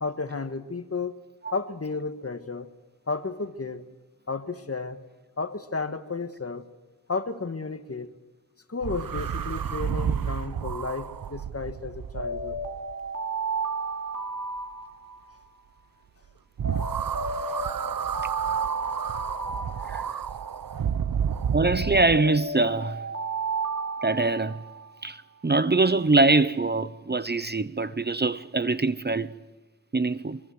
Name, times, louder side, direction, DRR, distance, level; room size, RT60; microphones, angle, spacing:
voice 1, 0.0-1.2 1.5-2.7 3.1-3.8 4.3-5.0 5.4-6.7 7.1-8.1 8.7-12.6, left 4 dB, 45° left, 1.7 m, -32 dB
sound 1, 8.8-13.1 16.6-22.2, right 8 dB, 85° right, 0.8 m, -31 dB
Alarm, 12.2-15.5 16.6-20.5 21.6-24.9, right 3 dB, 65° right, 5.6 m, -33 dB
voice 2, 21.5-23.0 24.0-24.6 25.0-29.3 29.9-30.4, right 3 dB, 30° right, 0.8 m, -23 dB
24.5 x 24.5 x 7.9 m
wide cardioid pair, 75°, 33 cm